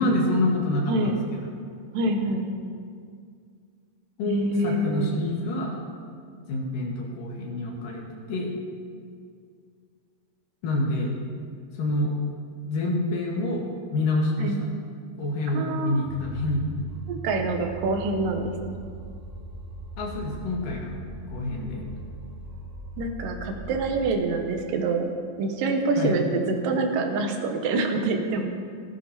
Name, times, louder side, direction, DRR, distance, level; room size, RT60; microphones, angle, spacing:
voice 1, 0.0-1.5 4.2-5.7 6.5-8.0 8.3-8.5 10.6-11.2 11.7-12.1 12.6-13.7 13.9-14.5 15.2-16.6 20.0-21.0 21.3-21.9 26.0-26.2, left 2 dB, 75° left, -2 dB, 3.3 m, -27 dB
voice 2, 1.9-2.5 4.3-5.1 14.4-14.6 15.5-16.1 17.1-18.5 23.0-25.1 25.4-28.5, right 3 dB, 90° right, 4 dB, 2.6 m, -26 dB
sound 1, 16.0-24.1, right 3 dB, 45° right, 2.4 m, -39 dB
14.0 x 13.0 x 2.9 m, 2.2 s
omnidirectional pair, 3.8 m